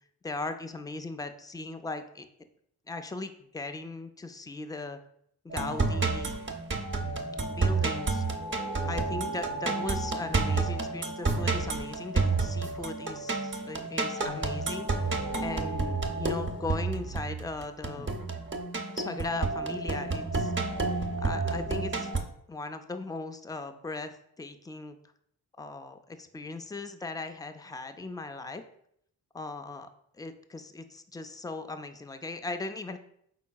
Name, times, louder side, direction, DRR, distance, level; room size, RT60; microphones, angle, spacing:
voice 1, 0.2-2.3 2.9-5.0 5.4-6.3 7.4-8.2 8.8-18.2 19.0-20.5 21.2-22.1 22.5-25.0 25.6-28.6 29.3-29.9 30.2-33.0, left 3 dB, 10° left, 8 dB, 0.3 m, -38 dB
sound 1, 5.5-22.2, right 3 dB, 30° right, 0.6 m, -30 dB
4.4 x 3.9 x 2.3 m, 0.71 s
supercardioid pair, 45°, 41 cm